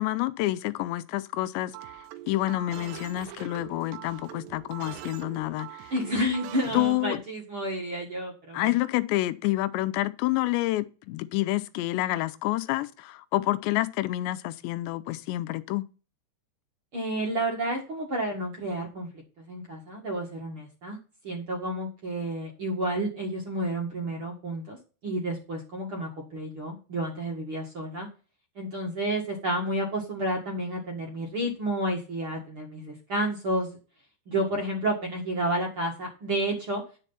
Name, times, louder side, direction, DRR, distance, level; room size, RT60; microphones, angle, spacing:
voice 1, 0.0-1.9 2.3-5.9 6.7-7.2 8.5-15.8, left 17 dB, 85° left, 2.9 m, -28 dB
sound 1, 1.7-7.1, right 13 dB, 85° right, 3.0 m, -43 dB
voice 2, 5.9-8.7 16.9-21.0 21.2-24.8 25.0-28.1 28.6-33.8 34.3-36.8, right 1 dB, 40° right, 2.0 m, -30 dB
10.0 x 5.4 x 5.7 m
omnidirectional pair, 5.0 m